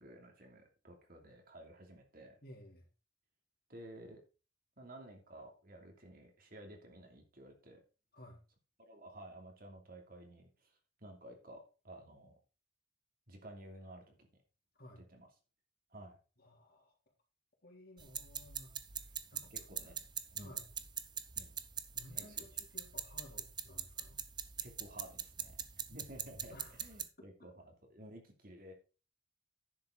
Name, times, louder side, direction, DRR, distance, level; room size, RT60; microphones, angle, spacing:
voice 1, 0.0-2.4 3.7-4.2 4.8-7.8 8.8-12.3 13.3-14.3 15.1-15.3 15.9-16.2 19.3-19.9 20.3-20.6 21.4-21.6 22.1-22.5 24.6-25.5 25.9-27.5 27.9-28.7, right 1 dB, 50° right, 3 dB, 2.8 m, -53 dB
voice 2, 2.4-2.9 8.1-8.4 14.7-15.0 16.4-17.0 17.6-20.0 20.4-20.7 21.9-24.2 26.5-26.9 27.4-27.5, left 1 dB, 55° left, 1 dB, 3.3 m, -57 dB
sound 1, 18.0-27.1, right 8 dB, 25° right, 0.7 m, -43 dB
10.5 x 7.8 x 3.9 m, 0.33 s
head